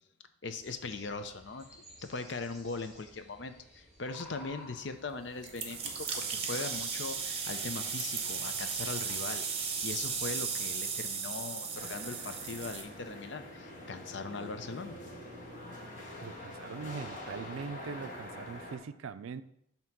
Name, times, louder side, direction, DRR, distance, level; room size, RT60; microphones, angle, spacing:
voice 1, 0.4-1.7 2.0-15.0, left 3 dB, 60° left, 8 dB, 0.6 m, -40 dB
sound 1, 0.6-10.5, left 1 dB, ahead, 1.6 m, -56 dB
sound 2, 5.4-12.8, right 5 dB, 30° right, 0.8 m, -36 dB
sound 3, 11.7-18.8, left 1 dB, 40° left, 1.6 m, -45 dB
voice 2, 16.2-19.4, right 5 dB, 90° right, 12 dB, 0.4 m, -41 dB
7.6 x 2.9 x 5.9 m, 0.74 s
head